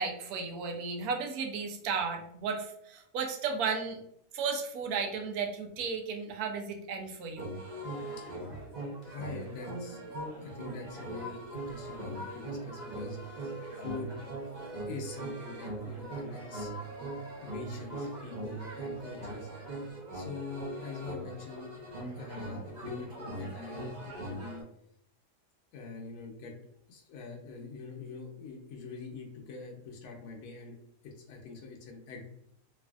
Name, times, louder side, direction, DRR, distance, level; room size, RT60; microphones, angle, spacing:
voice 1, 0.0-4.0 4.3-7.6, right 5 dB, 75° right, 3 dB, 1.0 m, -34 dB
sound 1, 7.4-24.6, right 2 dB, 55° right, 0.5 m, -40 dB
voice 2, 9.0-10.0 10.4-14.2 14.9-16.7 17.4-19.5 20.1-21.7 22.1-24.6 25.7-26.5 26.9-30.8 31.0-32.3, left 4 dB, 70° left, 0 dB, 1.0 m, -44 dB
3.2 x 2.5 x 2.3 m, 0.73 s
omnidirectional pair, 1.6 m